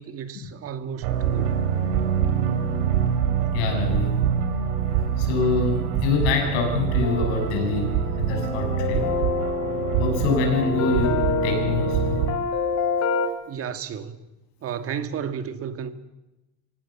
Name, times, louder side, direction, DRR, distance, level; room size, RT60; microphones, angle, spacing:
voice 1, 0.0-1.6 13.5-14.2 14.6-15.9, right 7 dB, 45° right, 2.1 m, -33 dB
sound 1, 1.0-12.4, right 8 dB, 80° right, 4.1 m, -25 dB
voice 2, 3.5-4.1 5.2-9.1 10.0-12.2, left 4 dB, 85° left, 6.9 m, -25 dB
sound 2, 7.0-13.3, left 4 dB, 55° left, 3.5 m, -27 dB
25.0 x 17.5 x 7.2 m
supercardioid pair, 120°, 33 cm